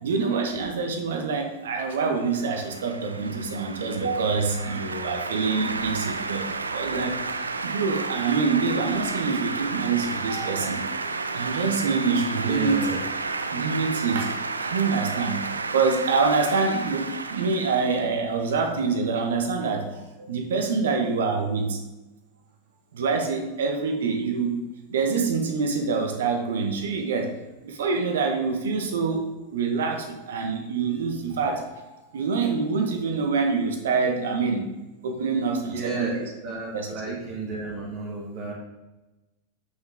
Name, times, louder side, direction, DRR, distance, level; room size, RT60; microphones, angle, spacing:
voice 1, 0.0-7.2 7.6-10.8 11.3-13.0 13.5-14.3 14.6-15.4 15.7-21.8 22.9-24.6 24.9-27.3 27.6-34.6 35.0-36.3 36.7-37.1, right 4 dB, 60° right, 4 dB, 1.2 m, -26 dB
sound 1, 1.9-18.5, right 3 dB, 75° right, 0.8 m, -32 dB
voice 2, 12.4-13.0 19.6-19.8 35.6-38.5, right 3 dB, 40° right, -3 dB, 1.7 m, -32 dB
8.1 x 5.7 x 3.5 m, 1.1 s
figure-of-eight pair, 90°, 0 cm